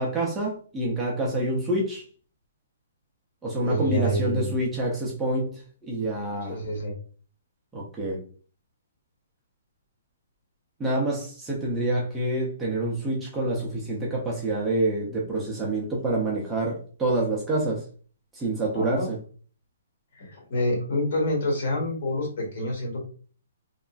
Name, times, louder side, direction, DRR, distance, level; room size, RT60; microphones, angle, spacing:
voice 1, 0.0-2.0 3.4-6.6 7.7-8.2 10.8-17.8 18.3-19.2, right 2 dB, 5° right, 0.4 m, -27 dB
voice 2, 3.6-4.5 6.5-7.0 18.7-19.1 20.1-23.1, left 1 dB, 50° left, 1.3 m, -27 dB
2.9 x 2.4 x 2.3 m
hypercardioid pair, 175°, 0 cm